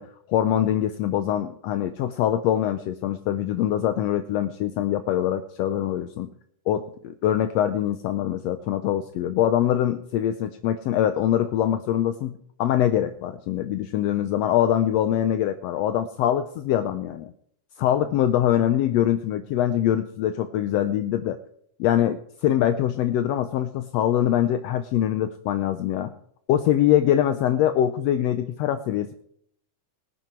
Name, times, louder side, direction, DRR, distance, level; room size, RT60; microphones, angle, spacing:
voice 1, 0.0-6.3 6.7-17.3 17.8-21.4 21.8-26.1 26.5-29.1, left 11 dB, 80° left, 10 dB, 1.5 m, -23 dB
19.0 x 9.4 x 4.5 m, 0.67 s
omnidirectional pair, 3.6 m